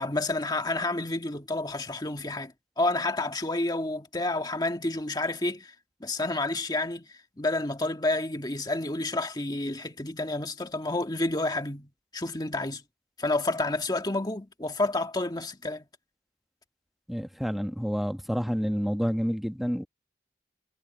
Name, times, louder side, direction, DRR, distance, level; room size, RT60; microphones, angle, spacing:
voice 1, 0.0-5.7 6.0-12.8 13.2-15.8, left 2 dB, 25° left, 1.8 m, -30 dB
voice 2, 17.1-19.8, equal, ahead, 1.5 m, -29 dB
head